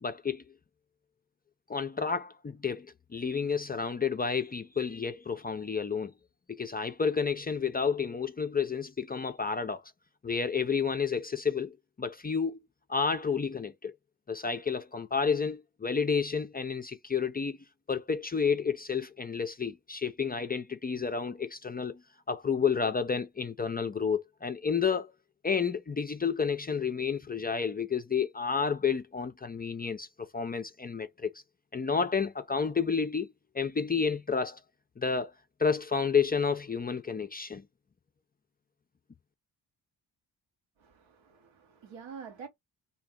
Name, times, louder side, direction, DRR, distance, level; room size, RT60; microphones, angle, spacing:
voice 1, 0.0-0.4 1.7-6.1 6.5-9.8 10.2-12.6 12.9-13.9 14.3-17.6 17.9-22.0 22.3-25.1 25.4-31.3 31.7-33.3 33.5-34.6 35.0-35.3 35.6-37.6, left 5 dB, 20° left, 0.4 m, -30 dB
voice 2, 40.8-42.5, right 6 dB, 80° right, 1.3 m, -47 dB
2.8 x 2.7 x 3.6 m
supercardioid pair, 55°, 46 cm